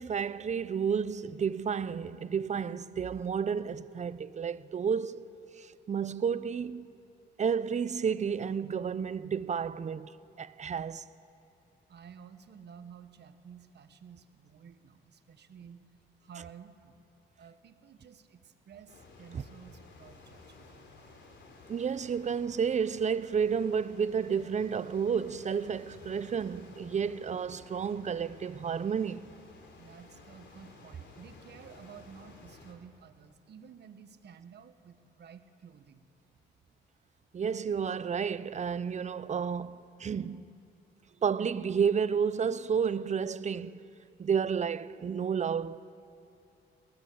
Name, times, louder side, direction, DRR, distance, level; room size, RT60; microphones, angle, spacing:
voice 1, 0.0-5.3 5.6-6.9 7.4-10.1 10.4-11.1 19.3-19.4 21.7-29.3 37.3-40.6 41.2-43.8 44.2-45.9, right 6 dB, 35° right, 0.7 m, -31 dB
voice 2, 11.9-15.9 16.2-17.0 17.4-20.8 29.8-36.0, right 7 dB, 60° right, 1.6 m, -52 dB
sound 1, 18.9-32.7, left 3 dB, 65° left, 4.0 m, -54 dB
23.5 x 18.5 x 8.8 m
cardioid pair, 90°, 20 cm